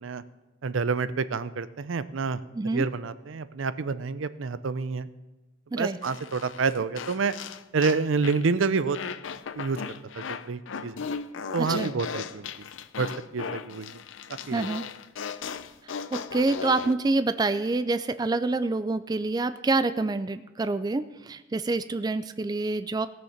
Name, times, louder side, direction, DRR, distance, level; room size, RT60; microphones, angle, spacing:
voice 1, 0.6-2.4 2.7-5.1 5.8-7.4 7.7-9.0 9.5-9.8 10.1-11.0 11.5-12.5 13.0-14.0 14.5-14.7, right 4 dB, 75° right, 14 dB, 0.5 m, -28 dB
sound 1, 6.0-8.5 8.9-16.9, left 6 dB, 70° left, 0.5 m, -37 dB
voice 2, 11.6-11.9 14.5-14.8 15.8-23.1, right 3 dB, 20° right, 12 dB, 0.3 m, -27 dB
17.5 x 6.4 x 5.8 m, 1.1 s
head